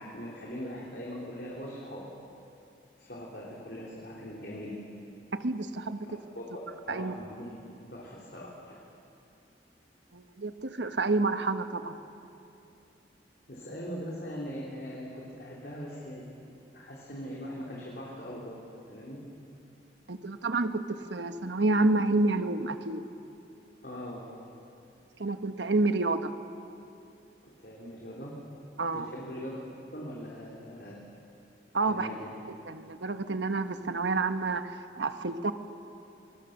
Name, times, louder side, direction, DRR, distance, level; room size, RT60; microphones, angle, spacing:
voice 1, 0.0-2.1 3.0-4.8 6.4-8.8 13.5-16.2 16.7-18.6 18.9-19.2 23.8-24.3 27.6-28.3 28.9-29.6 29.9-31.0 31.9-32.3, equal, 60° left, -4 dB, 3.6 m, -41 dB
voice 2, 5.3-6.1 6.9-7.1 10.1-12.0 20.1-23.1 25.2-26.3 28.8-29.1 31.7-32.1 32.7-35.5, right 3 dB, 85° right, 9 dB, 1.2 m, -29 dB
26.0 x 21.5 x 6.7 m, 2.7 s
head